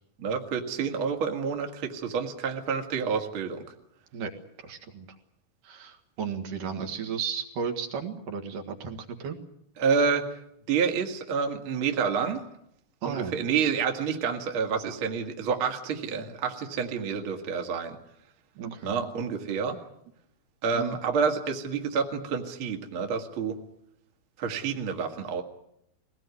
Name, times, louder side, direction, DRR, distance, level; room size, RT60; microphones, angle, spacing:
voice 1, 0.2-3.6 9.8-10.3 10.7-12.4 13.1-18.0 18.8-19.8 20.6-23.6 24.4-25.4, right 6 dB, 45° right, 3 dB, 2.3 m, -28 dB
voice 2, 4.6-5.1 5.6-9.4 13.0-13.4 18.6-18.9 20.7-21.0, right 6 dB, 65° right, 5 dB, 3.4 m, -34 dB
22.0 x 18.0 x 9.6 m, 0.77 s
omnidirectional pair, 4.2 m